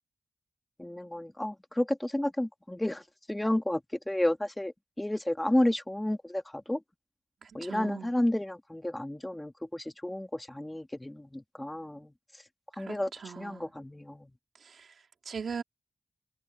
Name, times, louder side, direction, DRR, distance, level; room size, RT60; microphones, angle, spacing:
voice 1, 0.8-3.0 3.3-3.8 4.1-6.8 7.5-12.1 12.8-13.1 13.4-14.3, left 1 dB, 10° left, 1.4 m, -31 dB
voice 2, 7.4-8.1 12.7-13.7 14.6-15.6, right 6 dB, 75° right, 2.7 m, -41 dB
wide cardioid pair, 140°, 0 cm